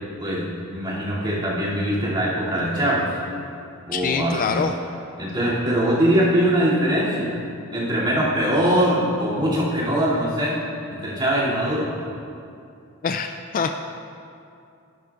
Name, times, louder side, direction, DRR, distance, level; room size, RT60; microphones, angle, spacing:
voice 1, 0.2-3.2 3.9-4.7 5.2-7.3 7.7-10.6 10.9-11.9, equal, 20° right, -9 dB, 2.5 m, -22 dB
voice 2, 3.9-4.7 13.0-13.7, left 5 dB, 40° left, 7 dB, 0.3 m, -24 dB
12.5 x 10.5 x 2.4 m, 2.5 s
head